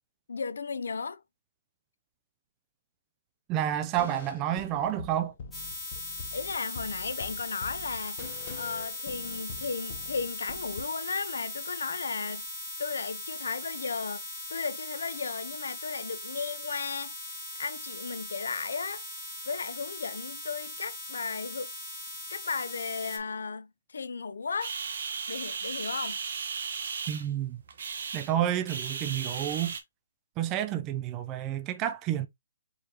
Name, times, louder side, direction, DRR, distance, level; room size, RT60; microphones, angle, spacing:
voice 1, 0.3-1.2 6.3-12.5 12.8-19.0 19.5-21.7 22.3-24.8 25.3-26.2, left 5 dB, 75° left, 0.5 m, -35 dB
voice 2, 3.5-5.3 27.1-27.6 28.1-29.7 30.4-32.3, right 11 dB, 15° right, 0.3 m, -30 dB
sound 1, 4.0-10.8, left 5 dB, 35° left, 0.7 m, -45 dB
sound 2, 5.5-23.2, left 2 dB, 5° left, 1.0 m, -39 dB
sound 3, 24.6-29.8, right 5 dB, 50° right, 0.7 m, -36 dB
4.6 x 3.2 x 2.8 m
hypercardioid pair, 170°, 0 cm